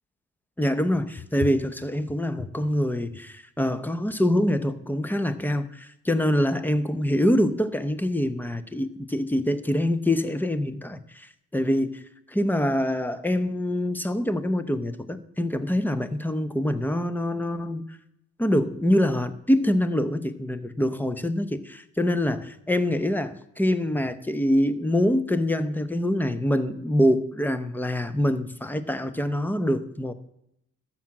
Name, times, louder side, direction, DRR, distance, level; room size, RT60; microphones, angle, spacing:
voice 1, 0.6-12.0 12.3-18.0 18.4-30.1, left 1 dB, 5° left, 0.7 m, -25 dB
13.0 x 6.0 x 7.5 m
cardioid pair, 125°, 31 cm